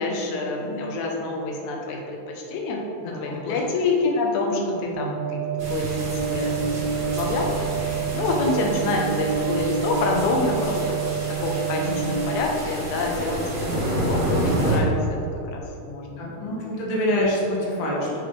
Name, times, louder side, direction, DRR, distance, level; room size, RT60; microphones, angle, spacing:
voice 1, 0.0-5.4 5.7-11.0 11.4-13.4 13.8-14.9 15.4-16.8, left 3 dB, 90° left, 0 dB, 2.2 m, -27 dB
voice 2, 3.0-3.6 11.8-12.2 16.2-18.2, left 1 dB, 55° left, -4 dB, 1.6 m, -27 dB
sound 1, 4.9-12.4, right 8 dB, 90° right, 0.9 m, -28 dB
sound 2, 5.6-14.8, right 1 dB, 40° right, 1.6 m, -30 dB
7.2 x 4.9 x 3.2 m, 2.9 s
omnidirectional pair, 3.3 m